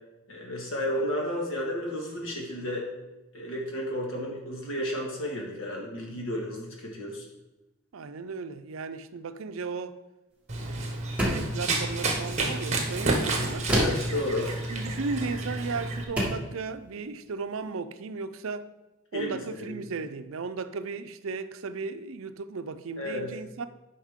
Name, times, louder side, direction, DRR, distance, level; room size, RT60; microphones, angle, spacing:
voice 1, 0.3-2.9 3.3-7.2 13.7-14.5 19.1-19.4 19.7-19.8 23.0-23.3, left 1 dB, 70° left, 1.8 m, -32 dB
voice 2, 7.9-10.0 10.6-13.7 14.7-18.7 19.1-23.7, right 4 dB, 75° right, 0.5 m, -35 dB
Run, 10.5-16.0, right 2 dB, 35° right, 1.2 m, -30 dB
sound 1, 11.2-11.6 13.7-14.1 15.5-15.6 16.2-16.5, equal, 5° right, 1.4 m, -26 dB
10.0 x 5.5 x 3.6 m
head